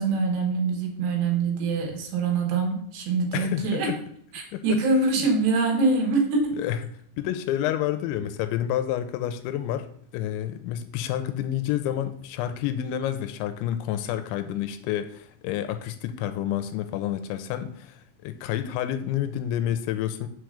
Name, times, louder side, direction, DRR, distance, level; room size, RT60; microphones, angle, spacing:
voice 1, 0.0-3.9 4.3-6.6, right 3 dB, 70° right, 2 dB, 3.3 m, -24 dB
voice 2, 3.3-4.0 4.5-4.8 6.6-6.8 7.2-9.9 10.1-20.3, left 11 dB, 85° left, 10 dB, 2.8 m, -29 dB
6.5 x 4.7 x 6.3 m, 0.65 s
omnidirectional pair, 5.4 m